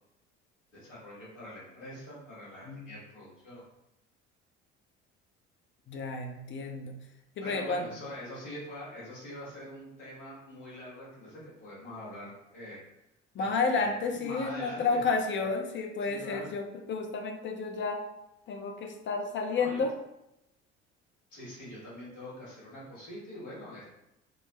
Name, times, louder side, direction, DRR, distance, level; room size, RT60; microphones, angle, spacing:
voice 1, 0.7-3.6 7.4-12.8 13.4-13.5 13.8-15.0 16.0-16.5 19.6-19.8 21.3-23.9, left 1 dB, 80° left, -7 dB, 1.4 m, -44 dB
voice 2, 5.9-7.0 7.4-7.9 13.3-18.0 18.5-19.9, left 4 dB, 30° left, 3 dB, 0.6 m, -31 dB
3.7 x 2.0 x 2.9 m, 0.87 s
figure-of-eight pair, 60°, 37 cm